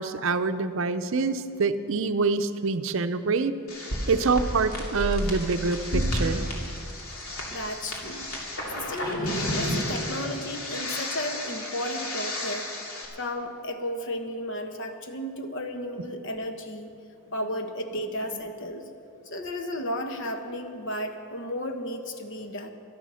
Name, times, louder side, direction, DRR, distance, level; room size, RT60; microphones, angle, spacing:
voice 1, 0.0-3.5 4.1-6.5, right 4 dB, 60° right, 10 dB, 0.6 m, -26 dB
sound 1, 3.7-13.0, left 1 dB, 75° left, 2.7 m, -31 dB
voice 2, 7.5-8.3 8.7-12.7 13.1-17.0 17.3-18.9 19.2-22.7, left 1 dB, 60° left, 5 dB, 1.2 m, -33 dB
12.5 x 12.5 x 6.3 m, 2.7 s
head